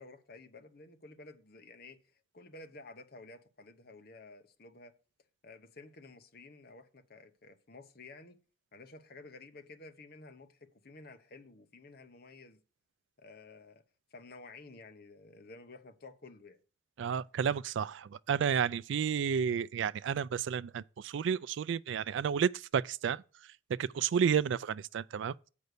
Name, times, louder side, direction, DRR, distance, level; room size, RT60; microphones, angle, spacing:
voice 1, 0.0-5.0 5.4-8.4 8.7-12.6 13.2-13.8 14.1-16.6, left 3 dB, 50° left, 0.9 m, -52 dB
voice 2, 17.0-23.2 23.8-25.5, right 7 dB, 70° right, 0.3 m, -31 dB
8.0 x 5.4 x 6.5 m
head